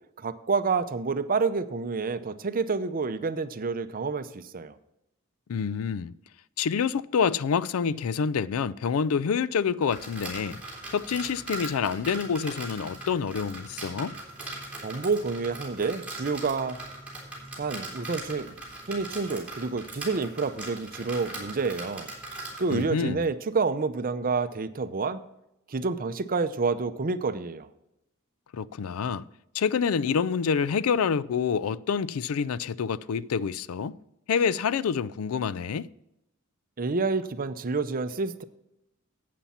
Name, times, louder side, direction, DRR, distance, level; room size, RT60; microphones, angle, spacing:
voice 1, 0.2-4.7 14.8-16.8 17.6-18.5 18.9-22.1 22.6-25.2 25.7-27.7 36.8-38.4, right 4 dB, 45° right, 0.6 m, -28 dB
voice 2, 5.5-6.1 6.6-10.6 10.9-14.2 22.7-23.3 28.5-29.2 29.5-34.0 34.3-35.9, left 6 dB, 85° left, 0.4 m, -27 dB
sound 1, 9.8-22.8, right 2 dB, 5° right, 3.6 m, -40 dB
11.5 x 8.5 x 4.2 m
head